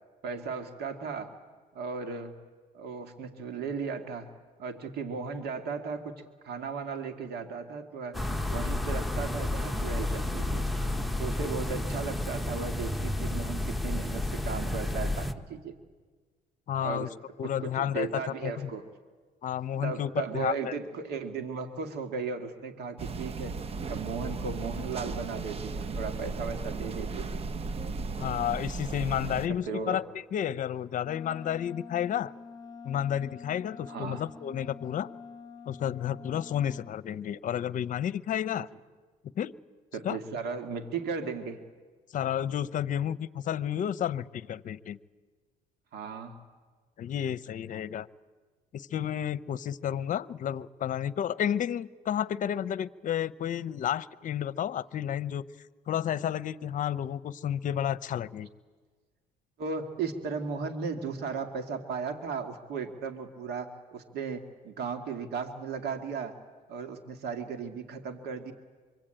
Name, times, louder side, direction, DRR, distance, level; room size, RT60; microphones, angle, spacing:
voice 1, 0.2-1.3 1.7-2.3 2.7-4.3 4.6-8.2 8.5-10.7 11.2-15.8 16.8-17.1 17.4-18.9 19.8-23.6 23.9-27.4 29.5-30.0 33.9-34.3 39.9-41.6 45.9-46.4 59.6-66.4 66.7-68.5, right 5 dB, 70° right, 6 dB, 2.1 m, -36 dB
sound 1, 8.1-15.3, left 1 dB, ahead, 1.2 m, -31 dB
voice 2, 16.7-17.1 17.4-18.7 19.4-20.7 28.2-30.0 30.3-32.3 32.8-35.1 35.7-38.7 39.4-39.5 40.0-40.2 42.1-45.0 47.0-48.1 48.7-55.4 55.9-58.5, left 10 dB, 50° left, 17 dB, 0.8 m, -31 dB
sound 2, 23.0-29.5, right 4 dB, 35° right, 1.0 m, -35 dB
Wind instrument woodwind instrument, 31.0-37.0, left 5 dB, 25° left, 1.2 m, -47 dB
25.0 x 25.0 x 9.0 m, 1.5 s
cardioid pair, 110°, 17 cm